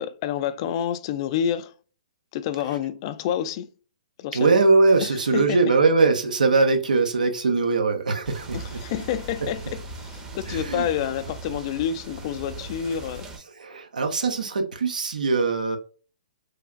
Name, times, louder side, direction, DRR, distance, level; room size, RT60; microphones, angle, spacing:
voice 1, 0.0-1.7 2.3-3.7 4.2-4.6 5.0-5.6 8.5-13.3, left 9 dB, 40° left, 0.3 m, -28 dB
voice 2, 4.3-8.8 10.5-10.9 13.6-15.8, right 3 dB, 85° right, 0.5 m, -21 dB
sound 1, 8.2-13.4, right 3 dB, 15° right, 0.6 m, -39 dB
3.2 x 2.4 x 2.3 m
hypercardioid pair, 135°, 4 cm